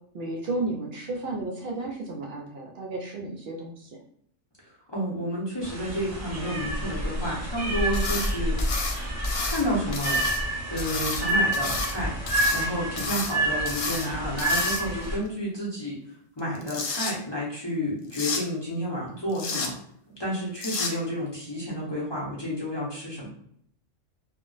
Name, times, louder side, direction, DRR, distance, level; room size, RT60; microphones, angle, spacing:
voice 1, 0.1-3.9, right 2 dB, 65° right, 0 dB, 0.7 m, -33 dB
voice 2, 4.6-8.6 9.4-10.2 10.7-12.1 12.5-16.0 16.4-19.7 20.2-23.3, equal, 25° left, -6 dB, 0.6 m, -30 dB
sound 1, 5.6-15.2, right 1 dB, 20° right, 0.5 m, -29 dB
sound 2, 7.9-8.3 8.6-9.6 9.9-10.4 10.8-11.9 12.3-12.7 13.0-13.3 13.7-14.1 14.4-15.1 16.4-17.1 18.1-18.4 19.3-19.7 20.6-20.9, left 4 dB, 80° left, 1.0 m, -31 dB
2.3 x 2.0 x 3.8 m, 0.67 s
omnidirectional pair, 1.3 m